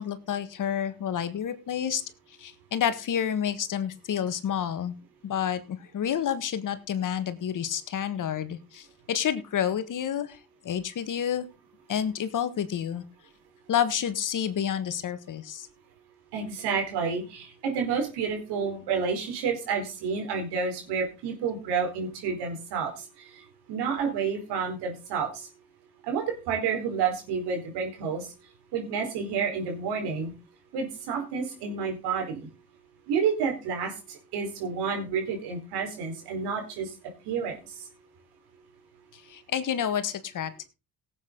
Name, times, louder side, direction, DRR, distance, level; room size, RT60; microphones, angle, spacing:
voice 1, 0.0-2.0 2.3-5.0 5.2-11.5 11.9-13.0 13.7-15.7 39.1-40.6, left 9 dB, 50° left, 12 dB, 1.6 m, -29 dB
voice 2, 16.3-23.0 23.3-23.4 23.7-25.5 26.0-28.3 28.7-30.3 30.7-32.5 33.1-36.9 37.2-37.6, right 6 dB, 70° right, 3 dB, 4.7 m, -30 dB
17.5 x 8.4 x 4.0 m, 0.30 s
hypercardioid pair, 60°, 41 cm